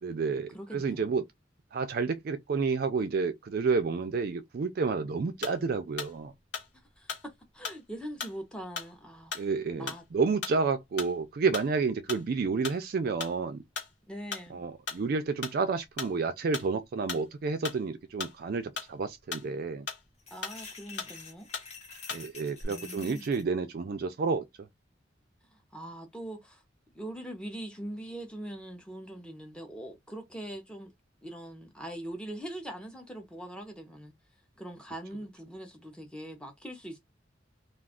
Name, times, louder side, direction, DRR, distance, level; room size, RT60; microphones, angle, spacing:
voice 1, 0.0-1.2 1.7-6.3 9.3-13.6 14.5-19.9 22.1-24.5, right 4 dB, 50° right, 0.4 m, -30 dB
voice 2, 0.5-1.2 7.0-9.3 9.8-10.0 14.1-14.6 20.3-21.5 22.7-23.3 25.5-26.6 26.9-30.9 31.2-34.1 34.6-37.0, right 1 dB, 5° left, 0.7 m, -42 dB
sound 1, 5.4-5.7 6.0-6.2 6.5-7.2 7.6-7.9 8.2-8.4 8.8-8.9 9.3-9.5 9.9-10.1 10.4-10.6 11.0-11.2 11.5-11.8 12.1-12.3 12.6-12.8 13.2-13.4 13.7-13.9 14.3-14.5 14.9-15.1 15.4-15.6 16.0-16.2 16.5-16.7 17.1-17.3 17.6-17.8 18.2-18.9 19.3-19.5 19.9-20.0 20.4-20.7 21.0-21.2 21.5-21.7 22.1-22.3 22.5-22.6, left 5 dB, 60° left, 1.2 m, -38 dB
sound 2, 20.2-23.4, left 4 dB, 35° left, 0.9 m, -47 dB
2.4 x 2.4 x 3.5 m
head